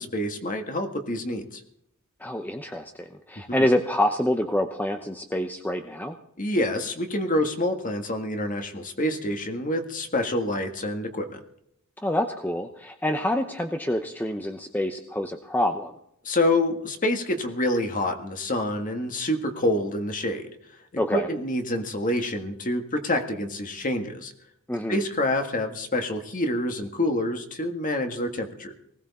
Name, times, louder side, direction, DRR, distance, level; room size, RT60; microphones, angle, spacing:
voice 1, 0.0-1.6 3.5-3.7 6.4-11.4 16.2-20.5 21.1-24.3 24.9-28.7, left 1 dB, 35° left, 5 dB, 1.8 m, -27 dB
voice 2, 2.2-6.2 12.0-15.9 21.0-21.3 24.7-25.0, left 1 dB, 10° left, 6 dB, 0.7 m, -27 dB
19.5 x 17.0 x 4.2 m, 0.74 s
head